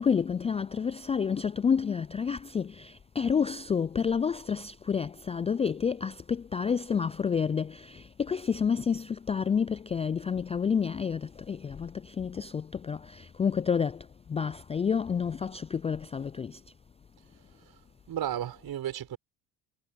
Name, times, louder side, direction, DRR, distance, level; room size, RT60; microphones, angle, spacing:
voice 1, 0.0-16.6, left 6 dB, 15° left, 0.3 m, -29 dB
voice 2, 18.1-19.2, right 11 dB, 55° right, 5.9 m, -34 dB
hypercardioid pair, 70°, 45 cm